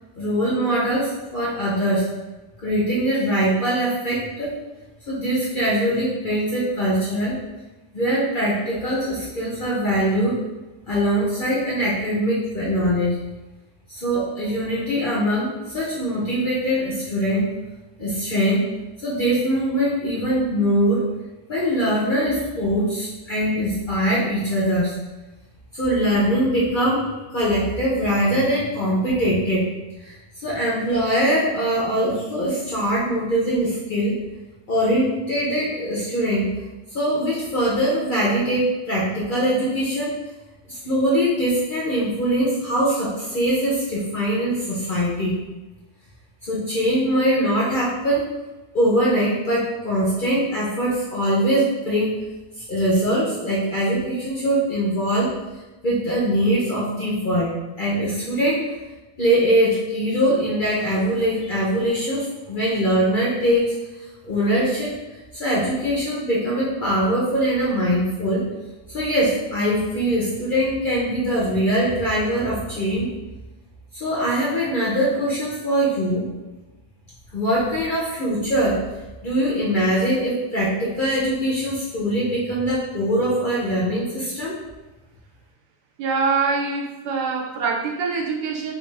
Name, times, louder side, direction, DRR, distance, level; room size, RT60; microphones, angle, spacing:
voice 1, 0.2-2.1 2.6-4.5 5.1-7.4 7.9-10.4 10.9-13.2 13.9-17.5 18.0-18.6 19.0-21.1 21.5-24.9 25.7-29.7 30.0-34.2 34.7-36.5 36.9-40.2 40.7-45.4 46.4-48.3 48.7-52.2 52.7-55.3 55.8-58.7 59.2-63.7 64.2-65.0 65.3-68.5 68.9-73.1 73.9-76.3 77.3-78.8 79.2-84.6, equal, 60° left, -6 dB, 0.5 m, -22 dB
voice 2, 86.0-88.7, right 4 dB, 80° right, 1 dB, 1.2 m, -24 dB
3.3 x 2.5 x 3.2 m, 1.1 s
omnidirectional pair, 1.8 m